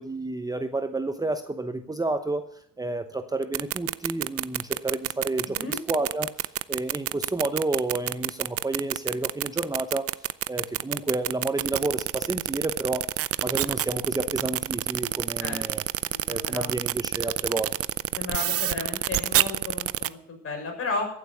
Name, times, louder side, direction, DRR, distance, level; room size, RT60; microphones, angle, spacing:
voice 1, 0.0-2.5 2.8-10.1 10.5-13.1 13.4-15.8 16.3-17.7, right 2 dB, 10° right, 8 dB, 0.9 m, -30 dB
sound 1, 3.4-20.1, right 12 dB, 45° right, 0.6 m, -27 dB
voice 2, 5.5-5.8 15.4-15.8 16.1-16.7 18.1-21.1, left 3 dB, 40° left, 2 dB, 6.5 m, -34 dB
14.0 x 8.3 x 7.0 m, 0.69 s
cardioid pair, 100°, 33 cm